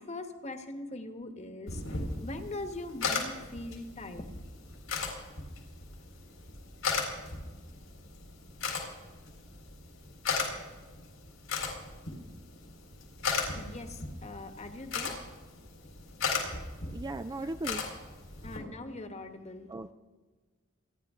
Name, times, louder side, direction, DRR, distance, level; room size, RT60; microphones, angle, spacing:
voice 1, 0.0-1.8 2.2-4.3 13.4-15.2 17.4-17.5 18.4-19.7, left 2 dB, 35° left, 7 dB, 1.3 m, -41 dB
sound 1, 1.7-18.6, left 4 dB, 90° left, 4.1 m, -37 dB
voice 2, 16.9-17.9 19.7-19.9, right 2 dB, 20° right, 10 dB, 0.4 m, -37 dB
28.0 x 10.5 x 3.7 m, 1.3 s
head